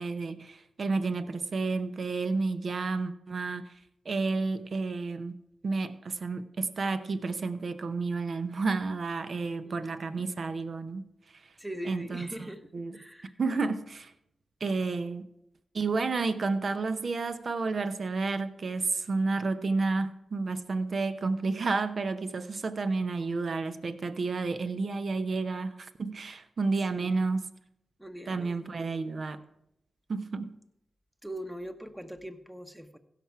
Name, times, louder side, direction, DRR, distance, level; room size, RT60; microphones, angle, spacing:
voice 1, 0.0-3.7 4.0-5.3 5.6-11.1 11.9-12.5 12.7-13.0 13.4-14.1 14.6-15.3 15.7-27.4 28.3-29.4 30.1-30.6, right 3 dB, 60° right, 0.8 m, -31 dB
voice 2, 9.6-10.3 11.6-13.4 26.8-27.2 28.0-28.8 31.2-33.0, equal, 5° right, 1.1 m, -42 dB
16.0 x 5.9 x 4.7 m
supercardioid pair, 40°, 0 cm